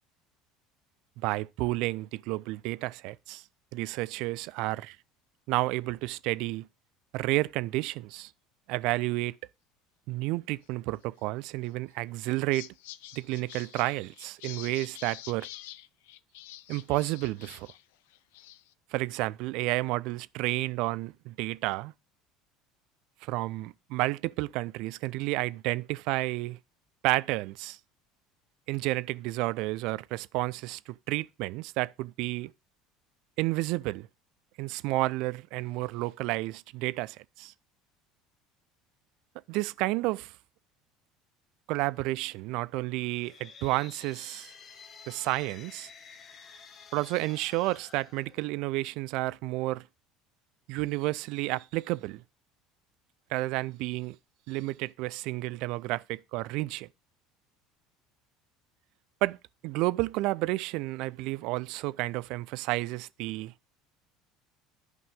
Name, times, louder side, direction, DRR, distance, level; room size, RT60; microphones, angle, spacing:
voice 1, 1.2-3.4 3.7-5.0 5.5-6.7 7.1-8.3 8.7-9.4 10.1-12.7 13.1-15.5 16.7-17.7 18.9-21.9 23.2-26.6 27.0-27.8 28.7-32.5 33.4-34.1 34.6-37.5 39.5-40.3 41.7-44.5 45.1-45.9 46.9-49.8 50.7-52.2 53.3-54.2 54.5-56.9 59.2-59.4 59.6-63.5, right 20 dB, 65° right, 0.5 m, -31 dB
sound 1, 11.6-11.9 12.3-17.8 18.1-18.7, left 15 dB, 70° left, 0.5 m, -47 dB
sound 2, 43.0-48.9, left 6 dB, 45° left, 1.4 m, -51 dB
11.5 x 5.4 x 5.1 m
hypercardioid pair, 70°, 0 cm